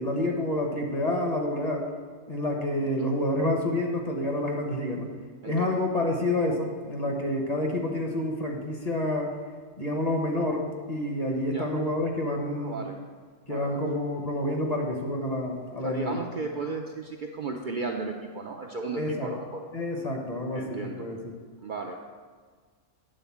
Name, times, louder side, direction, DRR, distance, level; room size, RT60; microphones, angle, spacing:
voice 1, 0.0-1.9 2.3-5.1 5.4-9.3 9.8-12.8 13.5-16.2 19.0-19.3 19.7-21.2, left 1 dB, 35° left, 1 dB, 1.0 m, -28 dB
voice 2, 5.4-5.8 11.5-11.7 12.3-13.0 13.5-13.8 15.8-19.6 20.5-21.1 21.6-22.0, right 4 dB, 50° right, 1 dB, 0.6 m, -35 dB
9.0 x 4.0 x 7.1 m, 1.5 s
omnidirectional pair, 1.3 m